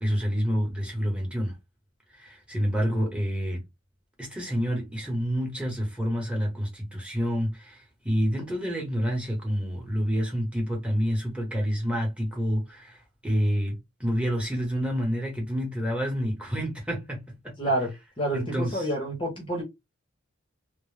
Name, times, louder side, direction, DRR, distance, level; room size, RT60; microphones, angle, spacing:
voice 1, 0.0-1.6 2.2-3.6 4.2-17.5 18.3-18.9, equal, 5° right, 1.0 m, -28 dB
voice 2, 17.6-17.9 18.2-19.6, right 1 dB, 25° left, 0.7 m, -28 dB
2.2 x 2.0 x 3.2 m
head